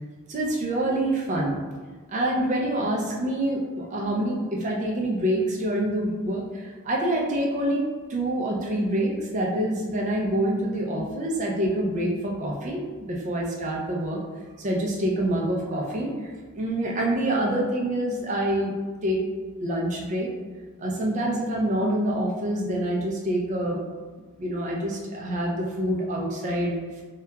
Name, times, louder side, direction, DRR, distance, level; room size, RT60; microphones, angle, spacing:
voice 1, 0.3-1.6 2.1-7.8 8.1-14.2 14.6-18.7 19.0-19.2 19.6-20.3 20.8-23.8 24.4-27.0, right 1 dB, 35° right, -2 dB, 0.3 m, -26 dB
2.7 x 2.2 x 2.2 m, 1.4 s
head